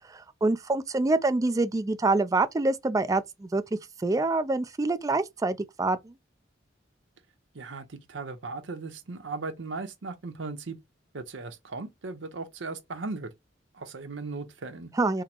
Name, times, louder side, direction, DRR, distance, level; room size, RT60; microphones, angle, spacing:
voice 1, 0.1-3.6 4.0-6.1 15.0-15.2, right 2 dB, 20° right, 0.3 m, -26 dB
voice 2, 7.5-10.8 11.1-13.3 13.7-14.9, right 3 dB, 80° right, 0.7 m, -37 dB
3.6 x 2.0 x 4.3 m
head